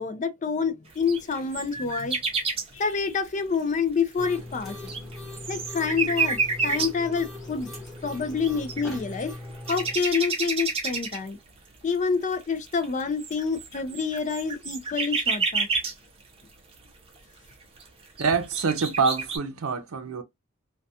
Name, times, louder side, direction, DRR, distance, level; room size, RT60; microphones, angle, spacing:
voice 1, 0.0-2.2 2.7-4.7 5.5-7.7 8.0-9.3 9.7-11.4 11.8-15.7, left 5 dB, 35° left, 0.4 m, -27 dB
sound 1, 1.1-2.6 4.0-4.1 4.6-7.1 8.1-8.2 8.4-9.2 9.5-11.3 11.9-12.0 12.7-15.9 17.2-17.3 17.8-17.9 18.2-19.4, right 4 dB, 25° right, 0.6 m, -28 dB
sound 2, 4.2-10.0, left 1 dB, ahead, 1.0 m, -39 dB
voice 2, 18.2-20.2, right 5 dB, 75° right, 0.6 m, -25 dB
2.3 x 2.3 x 2.6 m
head